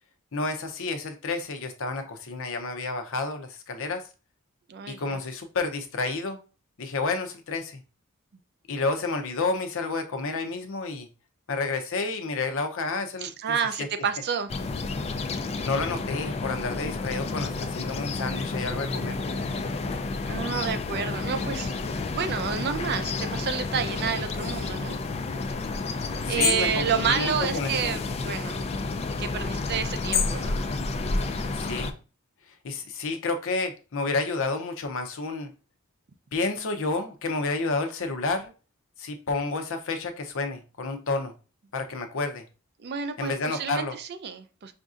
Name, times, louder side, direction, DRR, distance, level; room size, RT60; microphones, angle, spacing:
voice 1, 0.3-4.0 4.9-6.4 6.8-7.8 8.7-11.1 11.5-13.6 15.6-19.2 26.2-27.9 31.5-31.9 32.6-35.5 36.3-38.5 39.0-41.3 41.7-42.4 43.2-44.0, left 3 dB, 60° left, 7 dB, 0.6 m, -30 dB
voice 2, 4.7-5.2 13.2-14.5 20.3-21.8 22.1-25.0 26.2-28.6 29.2-30.6 42.8-44.7, right 7 dB, 45° right, 9 dB, 0.4 m, -29 dB
sound 1, 14.5-31.9, left 3 dB, 30° left, 0.3 m, -30 dB
5.0 x 2.6 x 2.4 m, 0.34 s
head